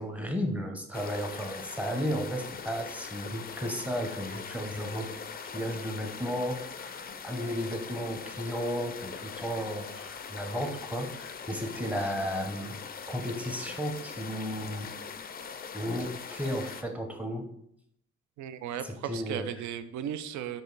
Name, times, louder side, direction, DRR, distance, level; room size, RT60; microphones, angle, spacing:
voice 1, 0.0-5.1 5.4-12.8 13.1-14.9 15.7-17.5 18.8-19.5, equal, 5° right, 4 dB, 0.7 m, -34 dB
sound 1, 0.9-16.8, left 6 dB, 30° left, 0.4 m, -42 dB
voice 2, 18.4-20.6, right 9 dB, 75° right, 11 dB, 0.4 m, -36 dB
4.8 x 2.7 x 3.9 m, 0.73 s
cardioid pair, 90°, 30 cm